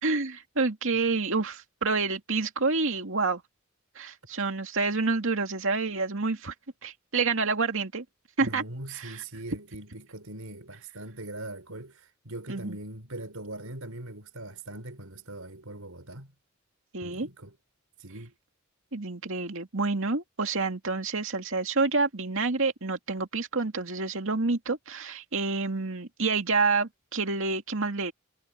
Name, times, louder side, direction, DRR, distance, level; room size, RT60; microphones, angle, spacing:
voice 1, 0.0-3.4 4.0-6.5 6.8-8.0 8.4-8.6 8.9-9.2 12.5-12.8 16.9-17.3 18.9-28.1, right 4 dB, 65° right, 2.4 m, -28 dB
voice 2, 8.4-16.3 17.0-17.5 18.0-18.3, right 2 dB, 85° right, 4.7 m, -41 dB
head